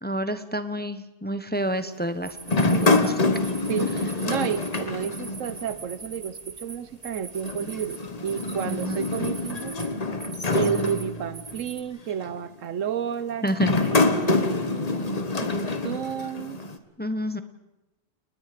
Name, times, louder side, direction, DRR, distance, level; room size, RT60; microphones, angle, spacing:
voice 1, 0.0-3.2 8.6-9.0 13.4-13.8 17.0-17.4, equal, 10° left, 11 dB, 0.8 m, -29 dB
sound 1, 2.2-11.8, right 4 dB, 35° right, 1.3 m, -42 dB
sound 2, 2.5-5.8 6.1-6.2 7.4-11.6 12.2-12.5 13.5-16.8, left 3 dB, 30° left, 1.3 m, -26 dB
voice 2, 3.7-9.8 10.5-13.5 13.7-16.6, right 8 dB, 85° right, 16 dB, 1.3 m, -31 dB
29.5 x 20.0 x 5.1 m, 1.0 s
omnidirectional pair, 1.3 m